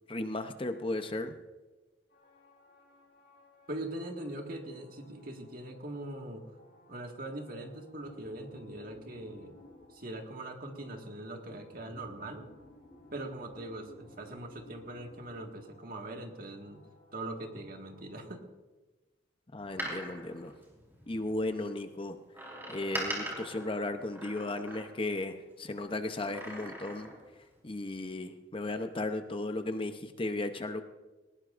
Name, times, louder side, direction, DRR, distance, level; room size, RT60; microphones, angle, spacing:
voice 1, 0.1-1.4 19.5-20.5 21.1-22.2 22.7-27.1 27.6-30.8, left 2 dB, 30° left, 8 dB, 0.7 m, -35 dB
sound 1, 2.1-18.4, left 1 dB, 55° left, 4.3 m, -59 dB
voice 2, 3.7-6.4 6.9-9.6 9.9-12.4 13.1-16.8 17.1-18.4, right 1 dB, 50° right, 2 dB, 1.8 m, -41 dB
Door, 19.6-21.4 22.3-25.2 26.1-27.3 27.6-27.7, right 1 dB, 10° right, 4.4 m, -41 dB
19.5 x 19.5 x 2.5 m, 1.2 s
head